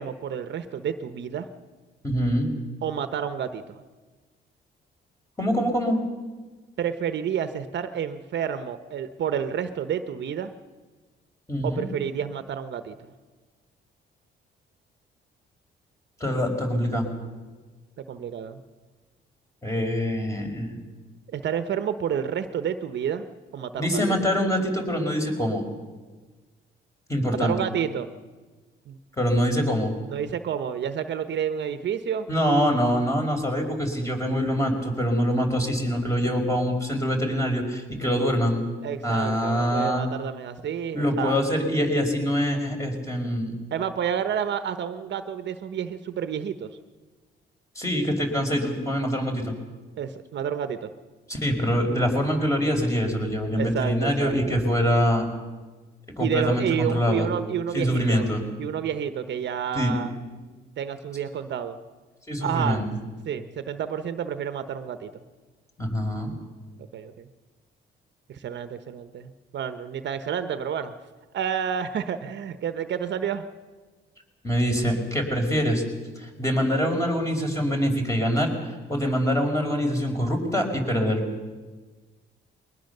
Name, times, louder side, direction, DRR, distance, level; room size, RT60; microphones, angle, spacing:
voice 1, 0.0-1.5 2.8-3.8 6.8-10.5 11.6-13.1 18.0-18.6 21.3-23.3 23.5-24.0 27.2-28.1 28.9-29.0 30.1-32.3 38.8-41.4 43.7-46.7 50.0-50.9 53.6-54.6 56.2-58.3 58.6-60.1 60.8-61.8 62.4-62.8 63.3-65.1 66.9-67.3 68.3-70.9 71.3-73.4, right 8 dB, 65° right, 10 dB, 1.1 m, -30 dB
voice 2, 2.0-2.5 5.4-6.0 11.5-11.9 16.2-17.1 19.6-20.8 23.8-25.6 27.1-27.6 29.2-29.9 32.3-38.6 39.0-40.1 40.9-43.5 47.7-49.5 51.3-55.3 56.1-57.3 57.7-58.4 59.7-59.9 62.3-62.8 65.8-66.3 74.4-75.8 76.2-78.5 78.9-81.2, equal, 15° left, 2 dB, 4.9 m, -24 dB
22.0 x 19.5 x 6.8 m, 1.3 s
cardioid pair, 90°, 20 cm